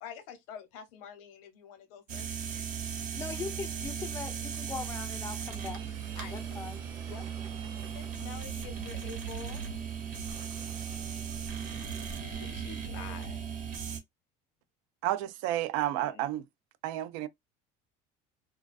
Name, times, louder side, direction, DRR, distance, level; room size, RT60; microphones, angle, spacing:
voice 1, 0.0-2.7 6.1-6.4 7.9-9.6 11.9-13.4 16.0-16.3, left 7 dB, 85° left, 0.8 m, -47 dB
sound 1, 2.1-14.0, right 7 dB, 55° right, 0.8 m, -37 dB
voice 2, 3.1-5.9 6.3-6.8 7.1-7.3, left 5 dB, 15° left, 0.3 m, -40 dB
sound 2, 5.5-12.2, right 4 dB, 25° right, 0.9 m, -54 dB
voice 3, 15.0-16.4 16.8-17.3, right 13 dB, 85° right, 0.4 m, -31 dB
2.4 x 2.2 x 2.4 m
cardioid pair, 135°, 17 cm